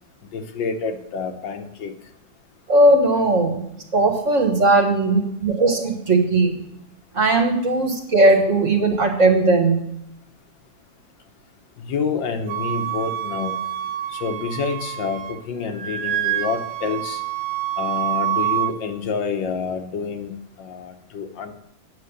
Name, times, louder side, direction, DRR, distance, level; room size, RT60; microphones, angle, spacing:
voice 1, 0.3-1.9 11.8-13.6 14.1-17.2 17.8-20.3 20.6-21.5, left 5 dB, 70° left, 6 dB, 1.6 m, -28 dB
voice 2, 2.7-3.6 3.9-6.5 7.1-9.8, right 2 dB, 40° right, 2 dB, 1.6 m, -18 dB
Wind instrument woodwind instrument, 12.5-15.4 15.7-18.7, right 12 dB, 80° right, 1.5 m, -27 dB
9.5 x 6.9 x 6.6 m, 0.78 s
omnidirectional pair, 2.1 m